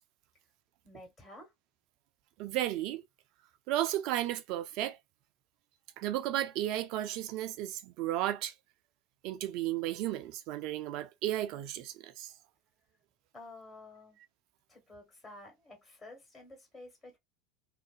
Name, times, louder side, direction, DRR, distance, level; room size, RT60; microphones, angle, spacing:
voice 1, 0.8-1.5 13.3-14.2 14.7-17.2, left 2 dB, 30° left, 1.3 m, -51 dB
voice 2, 2.4-3.0 3.7-5.0 6.0-8.5 9.2-12.3, right 13 dB, 55° right, 0.3 m, -34 dB
2.4 x 2.0 x 2.4 m
figure-of-eight pair, 70°, 0 cm